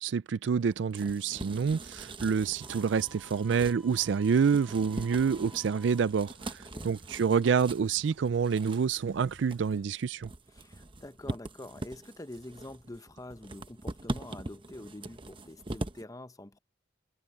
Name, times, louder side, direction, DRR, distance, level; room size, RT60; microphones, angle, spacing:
voice 1, 0.0-10.3, right 6 dB, 70° right, 0.4 m, -28 dB
extracting something out of a small cardboard, 0.6-16.0, right 2 dB, 25° right, 0.9 m, -42 dB
sound 1, 2.1-10.0, right 2 dB, 90° right, 7.8 m, -57 dB
Wind instrument woodwind instrument, 2.6-6.1, equal, ahead, 1.5 m, -56 dB
voice 2, 10.5-16.6, left 1 dB, 20° left, 0.8 m, -46 dB
head